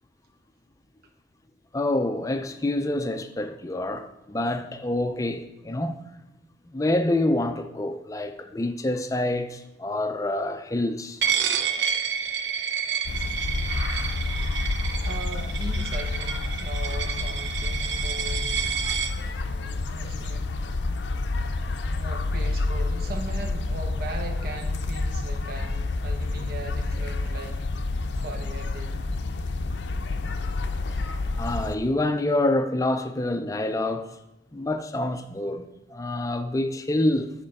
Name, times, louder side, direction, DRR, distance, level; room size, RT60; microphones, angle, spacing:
voice 1, 1.7-6.0 6.7-11.4 31.4-34.1 34.5-37.3, left 1 dB, 20° left, 0.4 m, -27 dB
Coin (dropping), 11.2-19.1, right 7 dB, 80° right, 0.6 m, -29 dB
sound 1, 13.0-31.7, left 3 dB, 80° left, 0.5 m, -29 dB
voice 2, 15.0-18.6 19.2-20.6 21.9-27.6 28.1-29.0, right 2 dB, 55° right, 0.9 m, -39 dB
7.6 x 4.4 x 5.3 m
head